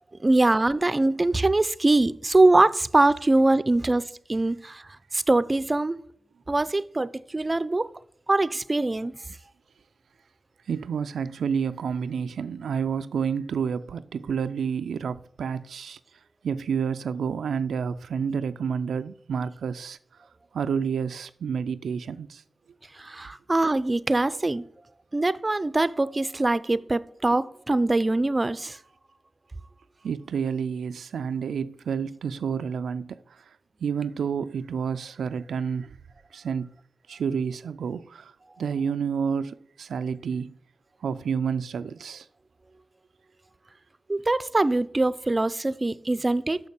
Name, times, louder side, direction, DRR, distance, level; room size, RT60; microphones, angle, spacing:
voice 1, 0.2-4.8 5.1-6.0 6.5-7.9 8.3-9.2 23.0-24.6 25.1-28.8 44.1-46.6, right 2 dB, 30° right, 0.5 m, -23 dB
voice 2, 10.7-16.0 16.4-20.0 20.5-22.4 30.0-33.6 33.8-36.0 36.3-36.7 37.1-40.5 41.0-42.3, right 6 dB, 90° right, 0.3 m, -29 dB
6.5 x 6.4 x 6.9 m
cardioid pair, 55°, 0 cm